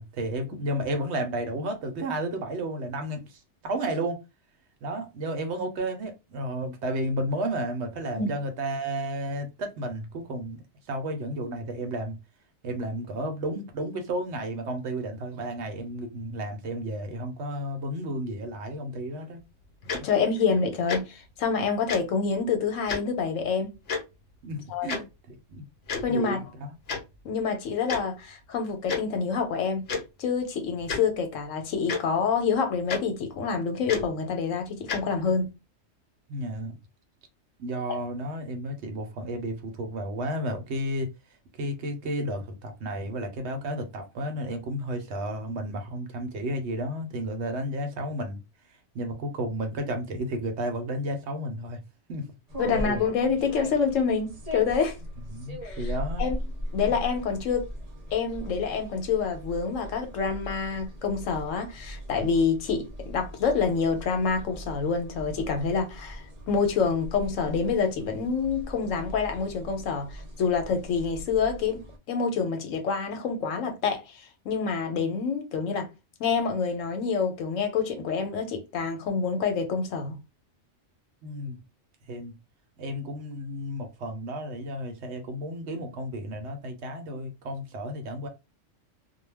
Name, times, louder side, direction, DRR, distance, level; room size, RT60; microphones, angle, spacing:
voice 1, 0.0-4.2 4.8-10.6 10.9-12.2 12.6-19.4 19.9-20.1 24.4-25.6 26.1-26.8 36.3-36.7 37.6-41.1 41.6-48.4 48.9-51.8 52.1-52.2 52.6-53.0 55.3-56.3 56.8-56.9 81.2-81.6 82.1-82.3 82.8-88.3, right 1 dB, 65° right, 0.9 m, -32 dB
Tick-tock, 19.9-20.0 20.9-21.0 21.9-22.0 22.9-23.0 23.9-24.0 24.9-25.0 25.9-26.1 26.9-27.0 27.9-28.0 28.9-29.0 29.9-30.0 30.8-31.0 31.9-32.0 32.9-33.0 33.9-34.1 34.9-35.0, left 5 dB, 55° left, 0.9 m, -29 dB
voice 2, 20.0-23.7 24.7-24.9 26.0-26.4 27.2-29.9 30.2-35.5 37.9-38.0 52.6-55.0 55.6-55.8 56.2-56.4 56.7-57.7 58.1-70.1 70.4-75.9 76.2-80.2, left 5 dB, 80° left, 1.0 m, -27 dB
sound 1, 52.5-72.0, equal, 40° right, 0.6 m, -39 dB
2.3 x 2.2 x 3.2 m
omnidirectional pair, 1.3 m